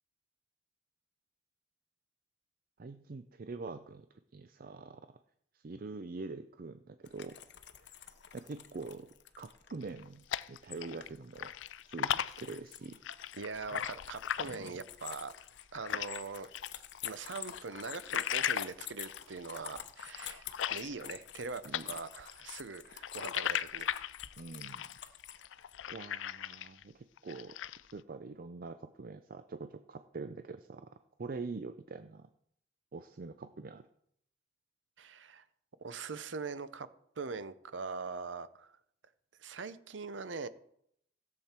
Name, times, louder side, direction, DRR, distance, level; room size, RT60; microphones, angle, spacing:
voice 1, 2.8-4.1 4.3-5.1 5.5-7.4 7.8-8.0 8.3-11.5 11.9-13.0 14.4-14.8 21.6-21.8 24.4-24.8 25.9-27.5 27.9-30.9 31.2-32.3 32.9-33.9, right 3 dB, 50° right, 10 dB, 0.5 m, -44 dB
sound 1, 7.0-25.8, left 11 dB, 65° left, 0.8 m, -49 dB
sound 2, 9.8-11.1 11.4-16.2 16.5-21.4 21.7-26.8 27.2-27.9, left 10 dB, 90° left, 0.4 m, -37 dB
voice 2, 13.4-15.3 15.7-16.5 17.0-24.0 35.0-35.4 35.8-36.9 37.2-38.7 39.4-40.5, right 4 dB, 80° right, 14 dB, 0.7 m, -42 dB
16.0 x 7.6 x 4.4 m, 0.72 s
head